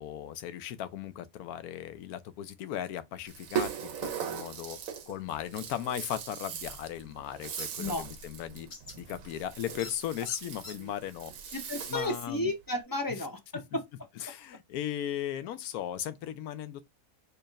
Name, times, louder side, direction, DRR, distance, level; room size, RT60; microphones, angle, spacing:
voice 1, 0.0-4.8 5.1-8.7 9.0-11.6 11.9-12.5 13.1-13.2 14.2-16.8, left 11 dB, 90° left, 1.1 m, -37 dB
Rattle (instrument), 3.3-12.3, right 8 dB, 70° right, 1.1 m, -39 dB
sound 1, 7.6-7.7 8.7-9.0 9.8-9.9 10.3-10.8, left 3 dB, 65° left, 1.6 m, -43 dB
voice 2, 11.5-13.8, left 1 dB, 25° left, 0.5 m, -33 dB
4.5 x 3.2 x 2.4 m
omnidirectional pair, 1.5 m